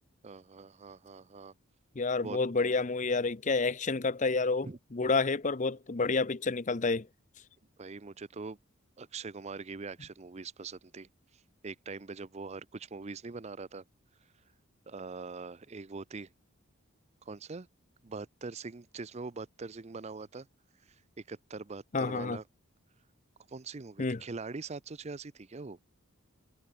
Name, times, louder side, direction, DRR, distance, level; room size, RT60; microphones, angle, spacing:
voice 1, 0.2-1.5 2.2-2.4 4.6-5.1 7.8-8.6 9.0-11.1 11.6-13.8 14.9-16.3 17.3-17.7 18.0-20.5 21.3-22.4 23.5-25.8, right 4 dB, 30° right, 0.5 m, -43 dB
voice 2, 2.0-7.1 21.9-22.4 24.0-24.2, left 3 dB, 35° left, 0.7 m, -29 dB
head